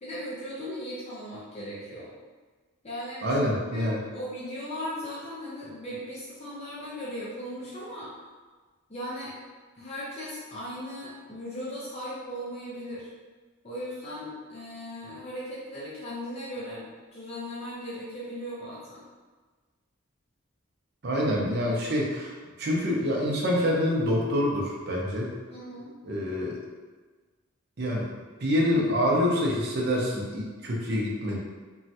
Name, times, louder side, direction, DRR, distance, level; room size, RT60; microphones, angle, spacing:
voice 1, 0.0-2.1 2.8-3.3 3.7-8.1 8.9-9.3 9.8-13.1 13.6-19.0 25.5-25.9, equal, 30° left, -8 dB, 0.5 m, -37 dB
voice 2, 3.2-4.0 21.0-25.3 26.0-26.6 27.8-28.1 28.4-31.4, equal, 50° right, -3 dB, 0.6 m, -26 dB
3.1 x 2.3 x 2.7 m, 1.4 s
head